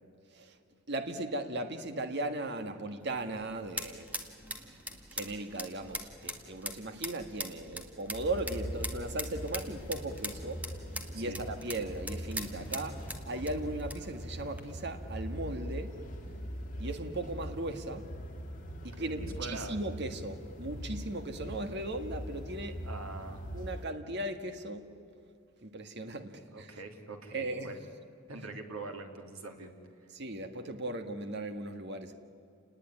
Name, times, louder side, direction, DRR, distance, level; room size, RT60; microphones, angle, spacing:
voice 1, 0.9-4.1 4.6-4.8 5.1-15.9 16.8-18.1 18.8-22.8 23.5-24.8 25.6-26.7 27.3-27.8 30.1-32.1, right 2 dB, 55° right, 7 dB, 1.7 m, -37 dB
sound 1, 3.0-14.6, right 1 dB, 5° right, 1.8 m, -43 dB
sound 2, 8.1-23.8, equal, 40° left, 3.0 m, -42 dB
voice 2, 18.9-19.8 22.8-23.4 26.5-27.8 28.3-29.7, right 3 dB, 90° right, 4 dB, 3.2 m, -43 dB
29.0 x 20.0 x 9.8 m, 2.3 s
head